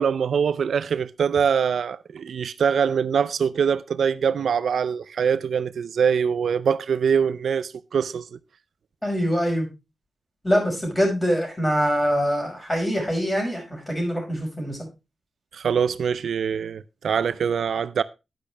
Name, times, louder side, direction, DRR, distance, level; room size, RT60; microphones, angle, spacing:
voice 1, 0.0-8.4 15.5-18.0, right 7 dB, 80° right, 0.5 m, -23 dB
voice 2, 9.0-9.7 10.4-14.8, equal, 10° left, 5.3 m, -24 dB
10.5 x 10.0 x 3.4 m
wide cardioid pair, 145°, 0 cm